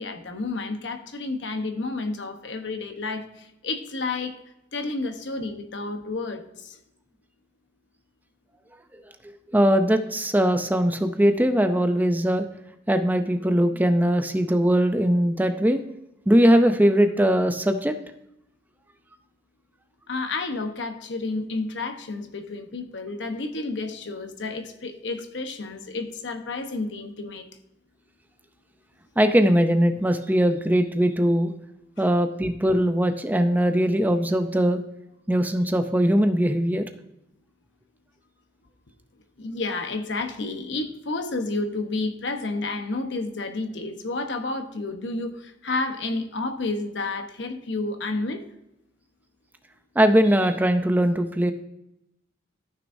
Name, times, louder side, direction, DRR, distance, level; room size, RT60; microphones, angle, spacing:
voice 1, 0.0-4.3 4.7-6.8 20.1-27.4 39.4-48.4, left 3 dB, 65° left, 7 dB, 1.0 m, -30 dB
voice 2, 9.5-12.4 12.9-15.8 16.3-17.9 29.2-31.5 32.0-34.8 35.3-36.8 50.0-51.5, equal, 10° right, 7 dB, 0.5 m, -20 dB
14.0 x 6.2 x 2.7 m, 0.84 s
head